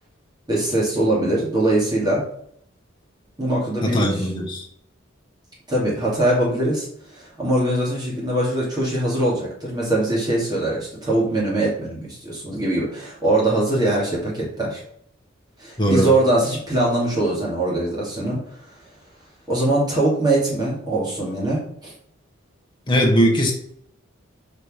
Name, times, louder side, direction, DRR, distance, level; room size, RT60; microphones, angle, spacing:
voice 1, 0.5-2.2 3.4-4.3 5.7-6.9 7.1-14.8 15.6-18.6 19.5-21.9, right 1 dB, 20° right, -5 dB, 2.6 m, -22 dB
voice 2, 3.8-4.7 15.8-16.1 22.9-23.5, equal, 25° left, -2 dB, 1.3 m, -19 dB
5.1 x 4.3 x 5.1 m, 0.67 s
head